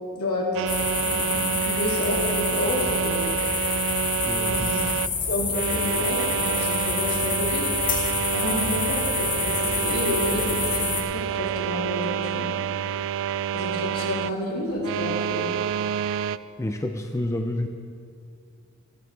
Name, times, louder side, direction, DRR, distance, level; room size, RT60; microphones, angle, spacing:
voice 1, 0.1-0.7 1.0-3.2 4.4-12.5 13.2-15.6, left 1 dB, 75° left, -4 dB, 3.4 m, -30 dB
sound 1, 0.5-5.1 5.5-14.3 14.7-16.4, right 9 dB, 60° right, 0.3 m, -28 dB
sound 2, 0.7-11.0, left 6 dB, 35° left, 1.7 m, -28 dB
voice 2, 4.2-4.9 16.6-17.7, left 1 dB, 15° left, 5 dB, 0.5 m, -29 dB
24.5 x 10.0 x 3.5 m, 2.4 s
head